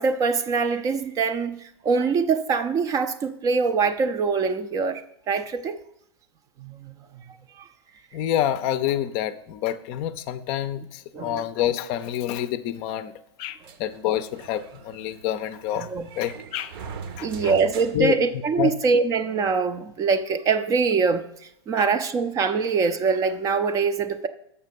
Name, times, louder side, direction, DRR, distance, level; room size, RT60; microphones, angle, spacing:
voice 1, 0.0-5.8 6.6-7.0 7.6-7.7 11.1-11.4 15.8-16.1 17.2-21.3 21.7-24.3, right 5 dB, 25° right, 0.5 m, -24 dB
voice 2, 8.1-13.1 13.4-15.9 16.2-16.7 17.2-17.5 17.9-18.1 18.6-18.7, left 11 dB, 40° left, 0.5 m, -27 dB
sound 1, 13.6-18.9, right 6 dB, 55° right, 0.8 m, -42 dB
6.8 x 5.6 x 5.2 m
hypercardioid pair, 105°, 14 cm